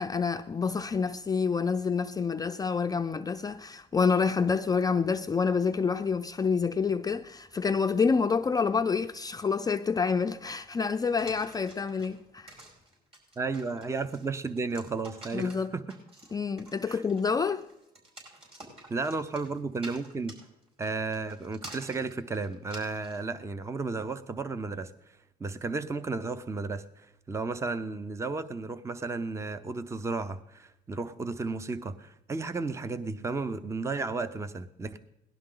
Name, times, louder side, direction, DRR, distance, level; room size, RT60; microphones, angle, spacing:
voice 1, 0.0-12.6 15.3-15.7 16.3-17.7, left 5 dB, 20° left, 0.5 m, -28 dB
sound 1, 11.2-23.2, right 2 dB, 35° right, 5.4 m, -49 dB
voice 2, 13.4-15.8 16.9-17.0 18.9-20.4 20.8-24.9 25.4-35.0, right 3 dB, 15° right, 0.7 m, -33 dB
18.0 x 11.5 x 3.8 m
cardioid pair, 110°, 17 cm